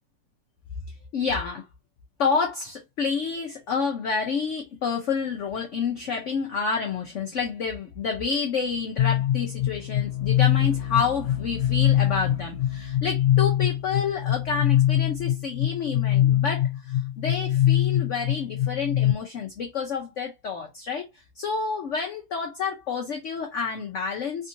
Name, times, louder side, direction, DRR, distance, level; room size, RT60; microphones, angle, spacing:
voice 1, 1.1-1.6 2.2-24.5, left 5 dB, 70° left, 0.7 m, -29 dB
sound 1, 9.0-19.1, left 12 dB, 85° left, 1.3 m, -23 dB
3.5 x 2.6 x 2.7 m
omnidirectional pair, 2.0 m